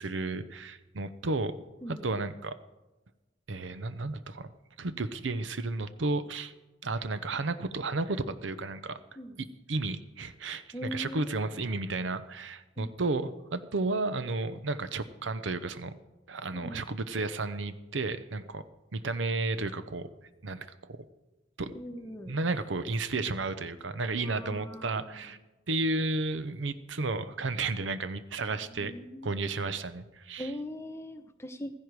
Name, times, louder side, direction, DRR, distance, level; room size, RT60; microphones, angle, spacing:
voice 1, 0.0-1.5 1.9-2.5 3.5-4.5 4.8-6.5 6.8-9.0 9.4-15.9 16.3-18.6 18.9-20.1 20.4-21.0 21.6-21.7 22.3-25.4 25.7-28.9 29.2-30.5, right 3 dB, 85° right, 12 dB, 0.8 m, -32 dB
voice 2, 10.7-11.2 12.8-12.9 16.5-16.8 21.7-22.3 24.2-25.3 28.5-29.3 30.4-31.7, equal, 15° left, 7 dB, 0.9 m, -41 dB
15.5 x 15.0 x 4.8 m, 1.1 s
head